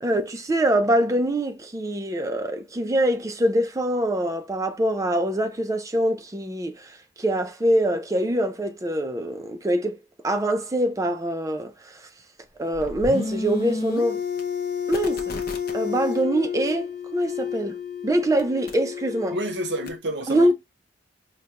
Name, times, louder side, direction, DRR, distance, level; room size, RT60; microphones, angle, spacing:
voice 1, 0.0-10.0 10.2-12.1 12.6-14.2 14.9-15.3 15.7-17.8 18.0-19.4 20.3-20.5, right 1 dB, 15° right, 0.4 m, -24 dB
sound 1, 12.7-20.0, left 6 dB, 50° left, 0.6 m, -30 dB
voice 2, 19.3-20.5, right 2 dB, 65° right, 0.7 m, -29 dB
4.8 x 2.2 x 2.8 m
head